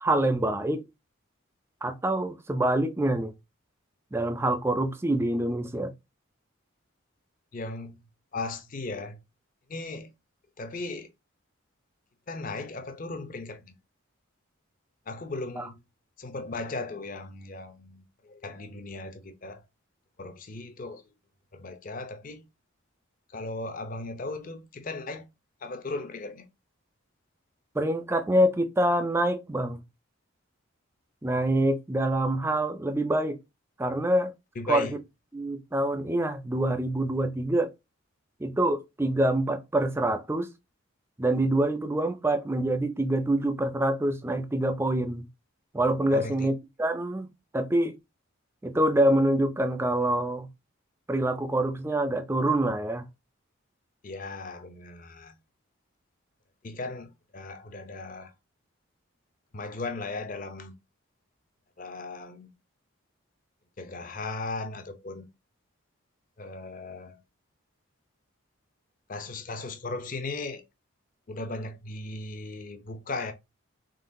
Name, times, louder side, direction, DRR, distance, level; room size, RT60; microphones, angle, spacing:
voice 1, 0.0-0.8 1.8-3.3 4.1-5.9 15.6-15.7 27.7-29.8 31.2-33.4 33.8-34.3 34.7-34.9 35.3-37.7 38.4-40.5 41.2-45.2 45.7-47.3 47.5-47.9 48.6-50.5 51.1-53.0, right 1 dB, 10° right, 0.3 m, -26 dB
voice 2, 7.5-9.2 9.7-10.1 10.6-11.1 12.3-13.7 15.1-15.8 16.2-19.6 20.2-21.0 21.5-22.5 23.3-25.3 25.6-26.5 34.6-34.9 46.1-46.5 54.0-55.4 56.6-58.3 59.5-60.7 61.8-62.5 63.8-65.3 66.4-67.2 69.1-70.6 71.3-73.3, left 3 dB, 40° left, 0.5 m, -37 dB
3.8 x 3.6 x 2.6 m
head